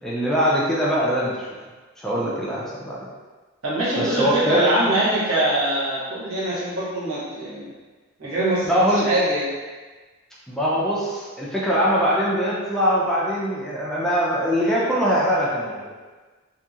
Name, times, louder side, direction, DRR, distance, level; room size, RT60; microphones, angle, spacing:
voice 1, 0.0-1.5 2.0-3.1 4.0-4.9 8.6-9.1 10.5-15.9, equal, ahead, -7 dB, 0.4 m, -22 dB
voice 2, 3.6-7.7 8.2-8.8 9.0-9.5, right 1 dB, 75° right, -9 dB, 1.1 m, -23 dB
2.8 x 2.6 x 2.4 m, 1.3 s
head